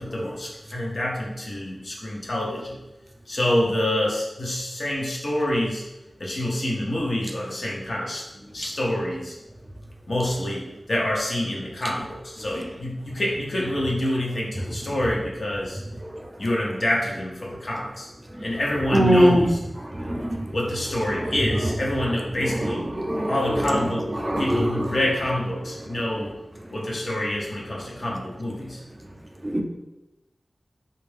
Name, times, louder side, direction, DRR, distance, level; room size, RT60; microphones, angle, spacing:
voice 1, 0.0-2.8 3.3-5.8 6.2-8.2 8.5-9.4 10.1-15.8 16.4-18.1 18.4-19.6 20.5-22.9 23.3-24.1 24.4-26.3 26.7-28.8, left 1 dB, 60° left, -4 dB, 0.7 m, -27 dB
voice 2, 18.9-19.5 20.0-20.5 22.6-23.4 24.2-24.9 29.4-29.6, equal, 25° right, 2 dB, 0.4 m, -21 dB
3.4 x 2.5 x 3.2 m, 1.0 s
wide cardioid pair, 90°, 0 cm